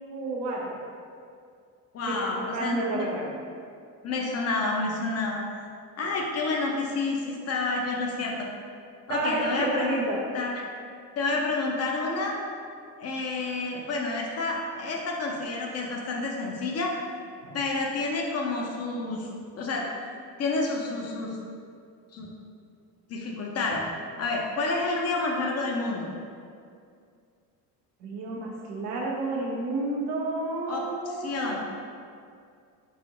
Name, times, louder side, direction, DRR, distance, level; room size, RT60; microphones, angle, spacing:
voice 1, 0.1-0.8 2.1-3.3 9.1-10.2 17.4-17.6 28.0-31.6, right 2 dB, 90° right, -3 dB, 0.6 m, -30 dB
voice 2, 1.9-3.2 4.0-5.4 6.0-8.5 9.1-10.0 10.3-10.6 11.2-12.4 13.0-17.0 17.5-19.3 19.5-19.9 20.4-21.4 22.1-22.3 23.1-23.9 24.2-26.1 30.7-31.6, left 3 dB, 35° left, -1 dB, 0.5 m, -29 dB
2.5 x 2.4 x 2.7 m, 2.3 s
hypercardioid pair, 55°, 48 cm